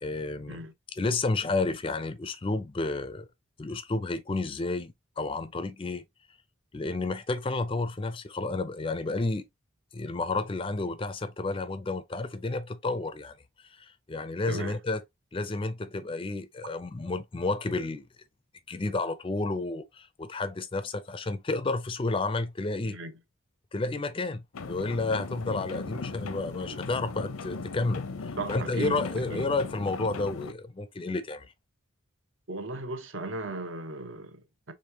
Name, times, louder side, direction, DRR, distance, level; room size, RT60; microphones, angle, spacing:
voice 1, 0.0-0.6 0.9-3.3 3.6-6.0 6.7-9.4 9.9-13.3 13.8-15.0 15.3-18.0 18.7-23.0 23.7-31.5, left 3 dB, 25° left, 0.4 m, -31 dB
voice 2, 14.5-14.8 22.8-23.1 28.4-29.0 29.3-29.5 32.5-34.7, right 2 dB, 65° right, 0.9 m, -36 dB
sound 1, 24.5-30.5, left 3 dB, 85° left, 0.6 m, -38 dB
5.2 x 3.5 x 2.8 m
head